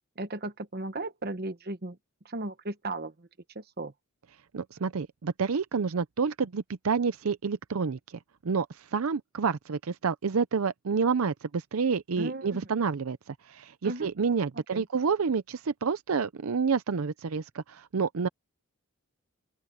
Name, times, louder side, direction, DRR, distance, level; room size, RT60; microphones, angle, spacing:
voice 1, 0.2-2.0 2.2-3.3 3.5-3.9 12.2-12.6 13.8-14.1 14.7-14.9, right 2 dB, 45° right, 1.1 m, -36 dB
voice 2, 4.5-18.3, right 5 dB, 75° right, 0.6 m, -29 dB
open air
head